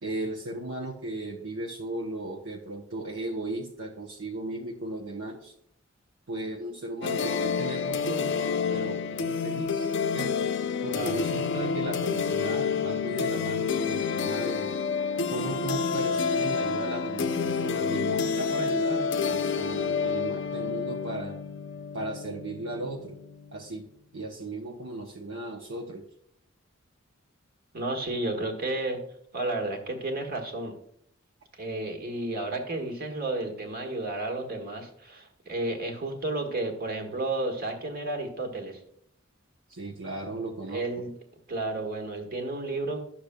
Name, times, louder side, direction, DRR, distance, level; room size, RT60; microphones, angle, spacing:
voice 1, 0.0-5.5 6.3-8.4 8.7-10.3 10.8-14.7 15.3-21.4 21.9-23.2 23.5-23.9 24.1-26.1 39.7-40.8, right 2 dB, 65° right, 1 dB, 0.8 m, -36 dB
sound 1, 7.0-23.6, left 5 dB, 60° left, 0.5 m, -29 dB
voice 2, 10.9-11.2 27.7-29.0 29.3-30.7 31.5-38.8 40.7-41.1 41.5-43.0, right 2 dB, 45° right, 4 dB, 1.5 m, -32 dB
11.5 x 6.6 x 2.2 m, 0.71 s
head